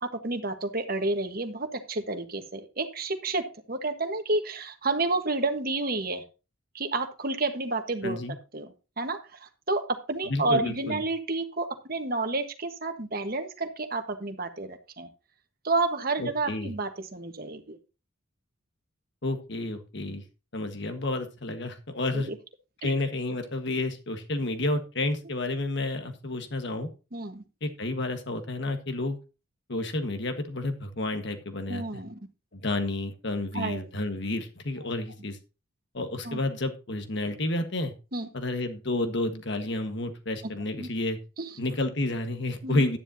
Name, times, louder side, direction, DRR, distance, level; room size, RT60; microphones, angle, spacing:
voice 1, 0.0-6.2 6.7-8.2 8.5-15.1 15.6-17.8 22.1-22.3 22.8-22.9 27.1-27.4 31.7-32.2 33.5-33.9 36.2-36.4 38.1-38.3 40.4-40.5 40.8-40.9 41.4-41.5 42.6-42.8, right 2 dB, 45° right, 7 dB, 1.4 m, -30 dB
voice 2, 8.0-8.3 10.3-11.0 16.2-16.7 19.2-20.2 20.5-22.3 22.8-26.9 27.6-29.2 29.7-32.0 32.5-35.4 35.9-37.9 38.3-41.2 41.6-43.0, left 2 dB, 55° left, 7 dB, 1.5 m, -30 dB
12.0 x 10.0 x 2.8 m, 0.30 s
head